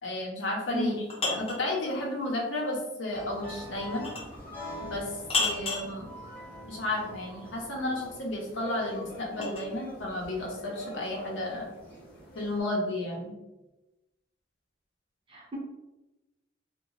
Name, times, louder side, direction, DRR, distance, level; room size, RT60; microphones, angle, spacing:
voice 1, 0.0-0.9 1.3-4.1 4.8-5.1 5.4-6.1 6.7-11.7 12.3-13.3, left 1 dB, 80° left, -2 dB, 0.7 m, -32 dB
sound 1, 0.7-1.7 4.0-4.4 5.3-5.9 8.2-9.7, left 3 dB, 30° left, 0.6 m, -31 dB
voice 2, 0.7-1.0 15.3-15.6, equal, 25° right, -3 dB, 0.5 m, -31 dB
sound 2, 3.1-12.6, equal, 10° left, 1.0 m, -45 dB
2.9 x 2.2 x 2.5 m, 1.0 s
head